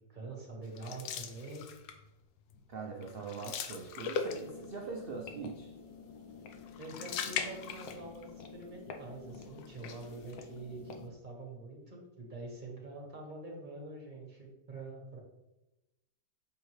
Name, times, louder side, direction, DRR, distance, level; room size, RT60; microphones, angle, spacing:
voice 1, 0.1-1.7 6.8-15.2, right 3 dB, 30° right, -1 dB, 1.5 m, -45 dB
sound 1, 0.8-2.1 2.5-2.7 3.0-4.8 6.5-8.3 8.6-8.7 9.6-10.4, left 6 dB, 85° left, 1.3 m, -39 dB
voice 2, 2.7-5.7, right 4 dB, 65° right, 0 dB, 0.5 m, -42 dB
sound 2, 4.2-11.1, left 5 dB, 60° left, 1.1 m, -49 dB
7.2 x 4.5 x 3.2 m, 0.97 s
omnidirectional pair, 1.9 m